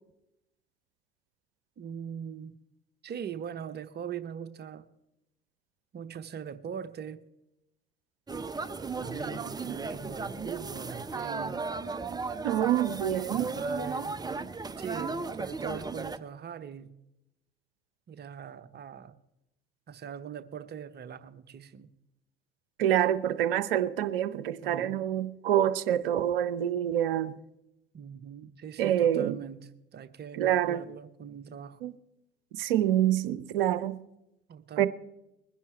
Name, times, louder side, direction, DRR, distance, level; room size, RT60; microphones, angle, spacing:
voice 1, 1.8-2.6 3.0-4.8 5.9-7.2 9.0-11.7 13.3-14.2 14.8-16.9 18.1-19.1 19.9-21.9 24.6-25.1 27.9-31.8 34.5-34.9, right 8 dB, 35° right, 1.0 m, -41 dB
sound 1, 8.3-16.2, right 4 dB, 15° right, 0.7 m, -35 dB
voice 2, 12.4-13.5 22.8-27.4 28.8-29.4 30.4-30.8 31.8-31.9 32.6-34.0 34.8-34.9, right 11 dB, 70° right, 0.7 m, -26 dB
21.0 x 10.5 x 4.5 m
figure-of-eight pair, 55°, 30 cm